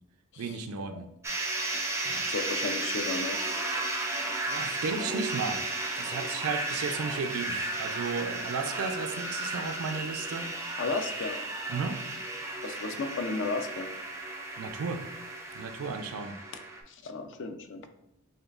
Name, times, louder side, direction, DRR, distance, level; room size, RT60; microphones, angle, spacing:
voice 1, 0.4-1.1 2.0-2.3 4.4-5.6 5.9-10.5 11.7-12.0 14.6-15.0 15.5-16.4, right 5 dB, 80° right, 7 dB, 0.4 m, -34 dB
sound 1, 1.2-16.8, right 2 dB, 15° right, 0.4 m, -34 dB
voice 2, 2.3-3.7 10.8-11.4 12.6-13.9 16.9-17.9, left 3 dB, 60° left, 7 dB, 0.5 m, -34 dB
6.5 x 2.3 x 2.4 m, 0.81 s
head